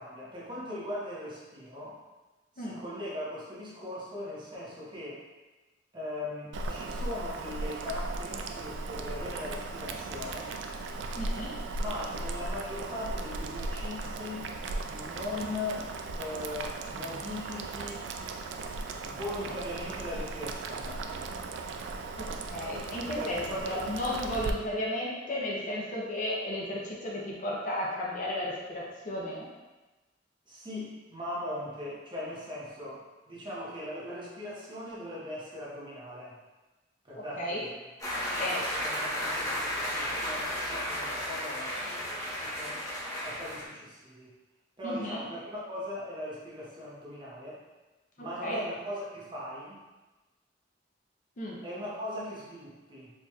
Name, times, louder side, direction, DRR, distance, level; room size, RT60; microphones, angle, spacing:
voice 1, 0.0-2.0 2.5-5.2 5.9-10.5 11.7-14.5 14.9-15.9 16.1-18.1 19.0-21.1 23.1-23.9 30.5-33.0 33.3-36.4 37.0-37.8 38.1-38.2 38.5-41.9 42.4-42.8 43.2-44.3 44.8-47.6 48.2-49.8 51.6-53.1, left 1 dB, 25° right, -7 dB, 1.0 m, -39 dB
Boiling, 6.5-24.5, right 3 dB, 85° right, 0.3 m, -37 dB
voice 2, 11.1-11.5 22.2-29.5 37.2-37.6 38.3-38.5 44.8-45.2 48.2-48.6 51.4-51.6, left 1 dB, 45° left, -3 dB, 0.6 m, -34 dB
sound 1, 38.0-43.6, equal, 20° left, 1.0 m, -33 dB
4.5 x 2.9 x 2.3 m, 1.2 s
head